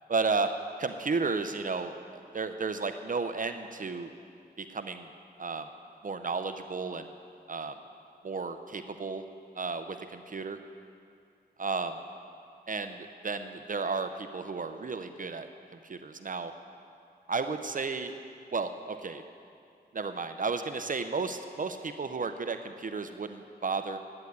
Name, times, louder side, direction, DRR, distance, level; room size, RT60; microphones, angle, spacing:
voice 1, 0.1-0.5 0.8-4.1 4.6-5.1 5.4-5.7 6.0-7.1 7.5-7.8 8.2-9.2 9.6-10.6 11.6-12.0 12.7-15.5 15.8-16.5 17.3-18.1 18.5-19.2 19.9-24.0, right 4 dB, 50° right, 8 dB, 0.6 m, -33 dB
10.5 x 9.7 x 8.0 m, 2.4 s
wide cardioid pair, 85°, 18 cm